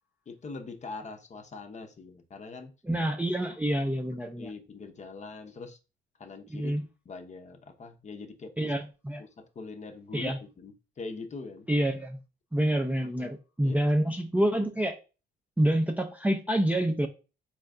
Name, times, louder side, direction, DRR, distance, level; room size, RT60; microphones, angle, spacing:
voice 1, 0.3-2.7 4.4-5.8 6.2-6.7 7.1-8.7 9.2-10.3 10.6-11.7 13.1-13.3 13.6-13.8, left 3 dB, 35° left, 5 dB, 0.7 m, -42 dB
voice 2, 2.8-4.5 6.5-6.8 8.6-9.2 10.1-10.4 11.7-12.2 12.5-15.0 15.6-17.1, right 1 dB, 5° right, 3 dB, 0.4 m, -27 dB
4.3 x 2.3 x 3.6 m, 0.32 s
cardioid pair, 90°, 20 cm